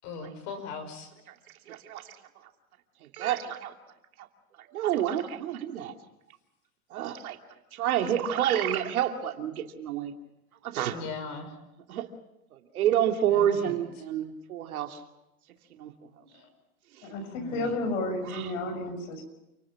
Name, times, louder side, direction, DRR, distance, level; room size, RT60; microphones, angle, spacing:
voice 1, 0.0-1.1 10.9-11.5 13.3-13.7 16.2-16.5 17.3-17.7, left 4 dB, 45° left, 8 dB, 5.8 m, -39 dB
voice 2, 1.7-2.2 3.0-3.7 4.2-4.3 4.6-6.0 6.9-7.4 7.7-10.1 10.6-11.0 11.9-12.1 12.5-15.0 15.7-15.9 16.9-17.1 18.3-18.5, right 10 dB, 80° right, 4 dB, 2.8 m, -29 dB
voice 3, 17.0-19.2, left 2 dB, 65° left, 7 dB, 6.9 m, -32 dB
29.0 x 19.0 x 6.0 m, 0.93 s
supercardioid pair, 145°, 43 cm